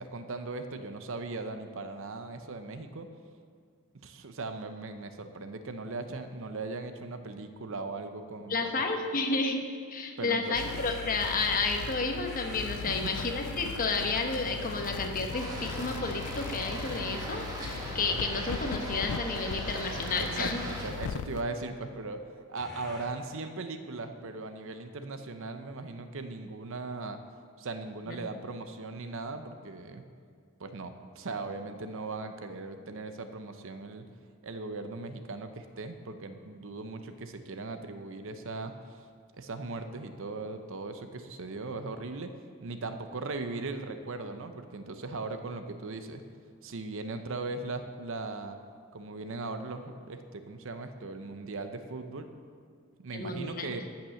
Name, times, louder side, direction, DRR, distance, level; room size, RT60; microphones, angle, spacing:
voice 1, 0.0-3.1 3.9-8.7 10.2-10.6 12.9-13.2 20.1-22.2 22.5-27.2 27.6-30.1 30.6-34.0 34.4-38.7 39.4-42.3 42.6-46.2 46.6-48.6 48.9-52.3 53.0-53.8, right 3 dB, 65° right, 8 dB, 0.8 m, -38 dB
voice 2, 8.5-9.6 9.9-20.6 28.1-28.2 53.1-53.8, left 3 dB, 40° left, 3 dB, 1.1 m, -31 dB
sound 1, 10.5-21.4, left 7 dB, 90° left, 0.4 m, -40 dB
sound 2, 10.6-19.1 19.5-21.2 22.6-23.0, left 1 dB, ahead, 2.8 m, -45 dB
sound 3, 15.3-20.9, right 1 dB, 20° right, 1.8 m, -40 dB
14.5 x 5.9 x 6.4 m, 2.1 s
head